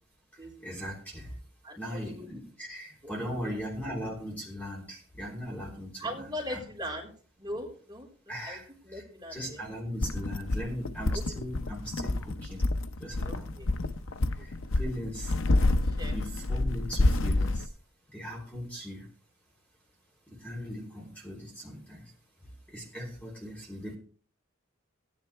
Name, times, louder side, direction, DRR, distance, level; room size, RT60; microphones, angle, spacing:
voice 1, 0.6-1.3 1.8-6.6 8.3-9.0 9.3-12.6 13.0-13.6 14.4-15.4 16.1-17.7 18.1-19.0 20.3-22.1 22.7-24.0, equal, 10° left, -3 dB, 3.4 m, -39 dB
voice 2, 1.6-2.3 3.0-3.5 6.0-7.1 7.4-8.6 8.8-9.6 11.1-11.2 13.2-13.7 14.4-14.5 15.8-16.2, equal, 20° right, -3 dB, 4.2 m, -40 dB
sound 1, 10.0-17.7, left 2 dB, 75° left, 0.7 m, -28 dB
17.0 x 10.5 x 3.4 m, 0.42 s
head